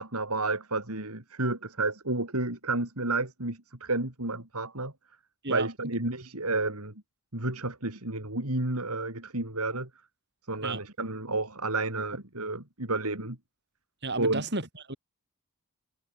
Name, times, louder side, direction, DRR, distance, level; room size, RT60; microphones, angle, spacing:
voice 1, 0.0-4.9 5.5-6.9 7.3-9.9 10.5-13.4 14.2-14.4, right 2 dB, 80° right, 5.1 m, -31 dB
voice 2, 14.0-15.0, right 2 dB, 50° right, 7.4 m, -32 dB
head